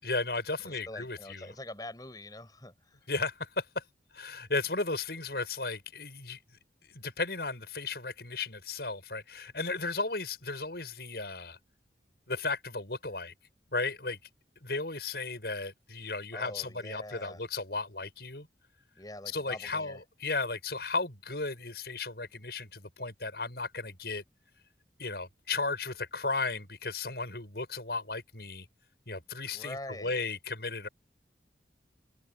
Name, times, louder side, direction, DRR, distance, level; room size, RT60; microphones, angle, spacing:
voice 1, 0.0-1.5 3.1-3.8 4.1-6.4 6.8-11.6 12.3-13.3 13.7-14.2 14.6-18.5 19.3-24.2 25.0-28.7 29.1-30.9, left 3 dB, 65° left, 6.8 m, -35 dB
voice 2, 0.6-3.1 16.3-17.5 19.0-20.0 29.5-30.2, left 1 dB, 20° left, 5.9 m, -44 dB
head